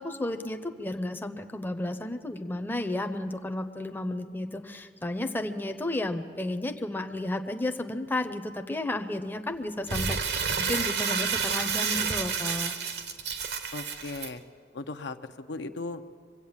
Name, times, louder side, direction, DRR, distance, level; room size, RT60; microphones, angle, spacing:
voice 1, 0.0-12.7, left 1 dB, 10° left, 6 dB, 0.6 m, -33 dB
Crumpling crinkling, 9.9-14.3, right 6 dB, 65° right, 1.0 m, -30 dB
voice 2, 13.7-14.4 14.7-16.0, left 3 dB, 85° left, 8 dB, 0.7 m, -37 dB
23.5 x 8.3 x 7.3 m, 2.2 s
head